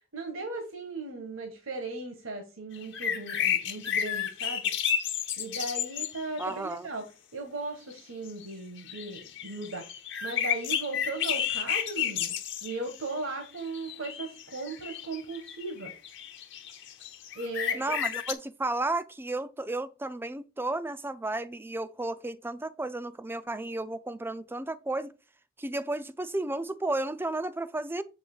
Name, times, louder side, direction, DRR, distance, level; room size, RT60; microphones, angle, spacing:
voice 1, 0.1-4.7 5.4-7.1 7.3-9.9 10.2-12.3 12.6-15.9 17.3-17.8, right 3 dB, 75° right, 1.6 m, -37 dB
sound 1, 2.8-6.5 7.9-8.0 8.3-8.5 8.8-13.0 13.6-18.3, left 9 dB, 60° left, 1.1 m, -31 dB
voice 2, 6.4-6.9 17.7-25.1 25.6-28.0, right 2 dB, 10° right, 0.4 m, -33 dB
7.9 x 3.2 x 6.2 m
head